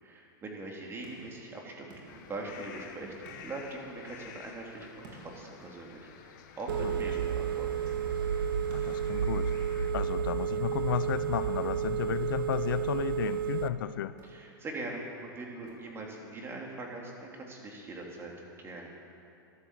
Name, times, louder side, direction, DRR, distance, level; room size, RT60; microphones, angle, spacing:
voice 1, 0.0-3.1 3.4-7.7 14.2-18.3 18.6-18.9, right 2 dB, 20° right, -1 dB, 3.1 m, -42 dB
sound 1, 1.0-2.8 3.3-4.4 5.0-8.1 8.7-10.1 10.9-11.5 12.5-13.2 14.1-14.8 15.7-16.3, right 2 dB, 55° right, 3.8 m, -56 dB
sound 2, 2.1-9.9, left 7 dB, 60° left, 1.6 m, -51 dB
Telephone, 6.7-13.7, right 8 dB, 85° right, 0.7 m, -31 dB
voice 2, 8.7-9.5 9.9-14.1, left 11 dB, 75° left, 14 dB, 0.6 m, -33 dB
14.0 x 12.0 x 7.5 m, 2.6 s
hypercardioid pair, 120°, 11 cm